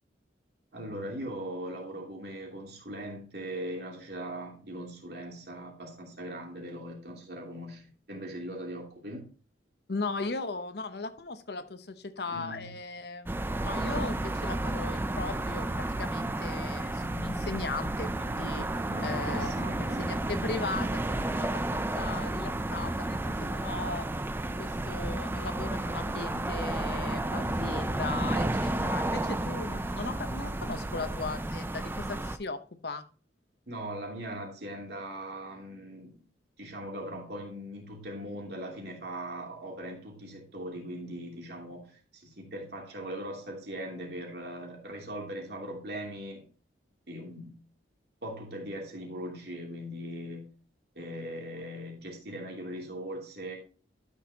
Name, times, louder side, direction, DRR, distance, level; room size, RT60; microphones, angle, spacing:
voice 1, 0.7-9.3 12.2-12.7 18.9-20.0 33.7-36.2 36.6-46.5 47.1-47.5 48.2-50.5 50.9-53.6, right 1 dB, 60° right, 0 dB, 2.8 m, -40 dB
voice 2, 9.9-18.6 19.0-19.5 19.8-24.1 24.6-33.0, left 3 dB, 60° left, 10 dB, 0.8 m, -38 dB
sound 1, 13.3-32.4, right 1 dB, 10° right, 0.4 m, -32 dB
12.5 x 6.5 x 2.8 m, 0.38 s
head